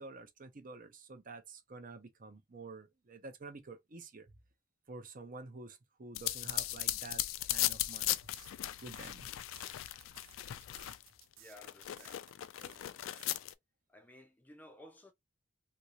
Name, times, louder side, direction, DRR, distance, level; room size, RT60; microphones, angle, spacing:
voice 1, 0.0-4.3 4.9-8.2 8.8-9.3, right 3 dB, 40° right, 0.6 m, -49 dB
sound 1, 6.1-11.2 11.6-13.5, left 15 dB, 80° left, 0.3 m, -37 dB
sound 2, 8.3-13.5, right 9 dB, 80° right, 0.6 m, -59 dB
voice 2, 11.4-13.3 13.9-15.1, left 1 dB, 10° left, 0.4 m, -57 dB
2.8 x 2.6 x 2.8 m
head